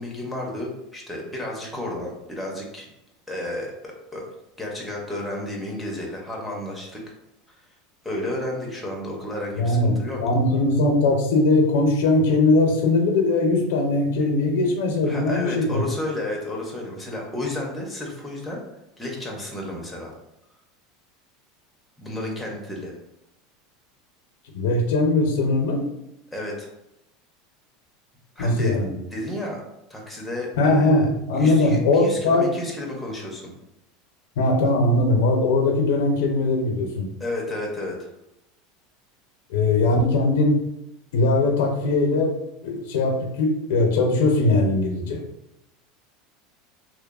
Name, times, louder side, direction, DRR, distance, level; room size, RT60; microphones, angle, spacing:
voice 1, 0.0-2.9 3.3-4.3 4.6-7.0 8.0-10.2 15.1-18.6 19.0-20.1 22.0-22.9 26.3-26.7 28.4-28.8 29.1-29.6 29.9-31.1 31.3-33.5 37.2-38.0, left 1 dB, ahead, -2 dB, 0.4 m, -32 dB
voice 2, 9.6-9.9 10.2-15.9 24.5-25.8 28.4-29.0 30.6-32.5 34.4-37.1 39.5-40.6 41.1-42.3 42.6-45.2, left 2 dB, 80° left, 3 dB, 0.5 m, -20 dB
2.8 x 2.0 x 2.3 m, 0.87 s
supercardioid pair, 170°, 0 cm